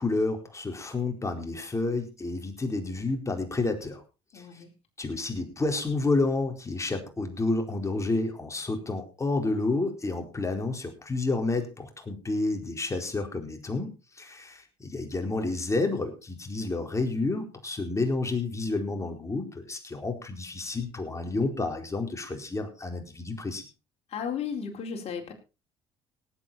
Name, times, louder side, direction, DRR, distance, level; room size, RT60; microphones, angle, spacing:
voice 1, 0.0-4.0 4.3-4.4 5.0-13.9 14.1-23.6, left 3 dB, 20° left, 4 dB, 4.4 m, -30 dB
voice 2, 4.3-4.7 24.1-25.3, left 7 dB, 50° left, 2 dB, 4.4 m, -34 dB
18.5 x 8.6 x 4.3 m, 0.31 s
hypercardioid pair, 65°, 13 cm